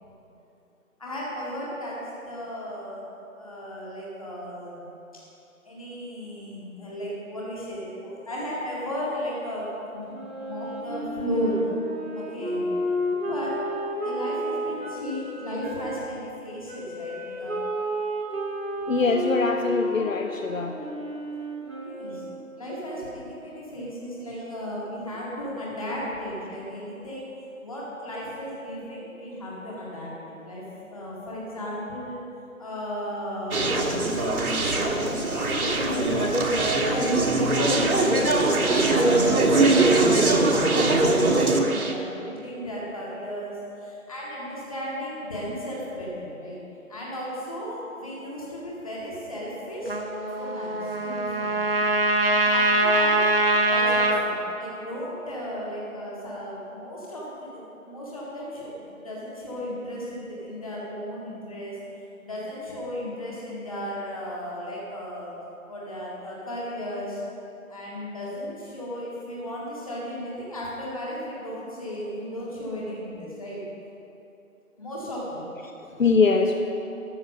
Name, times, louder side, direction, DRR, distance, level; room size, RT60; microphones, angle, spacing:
voice 1, 1.0-3.0 3.4-4.9 5.6-10.0 10.4-11.7 12.1-12.6 13.2-13.6 14.0-17.6 21.8-22.2 22.6-27.3 27.6-32.2 32.6-34.0 34.4-36.3 36.6-46.6 46.9-50.0 50.4-51.5 52.3-53.2 53.7-61.8 62.2-65.3 65.7-67.2 67.7-73.6 74.8-75.4 76.3-76.4, equal, 25° left, -6 dB, 2.0 m, -35 dB
Wind instrument woodwind instrument, 10.1-16.0 16.7-22.5, equal, 70° right, 2.7 m, -32 dB
voice 2, 18.9-20.7 76.0-76.6, left 4 dB, 65° left, 5 dB, 0.8 m, -22 dB
Conversation, 33.5-41.9, right 2 dB, 90° right, 1.6 m, -21 dB
Trumpet, 49.9-54.2, right 1 dB, 40° right, 0.9 m, -23 dB
13.5 x 6.4 x 6.5 m, 2.9 s
figure-of-eight pair, 175°, 43 cm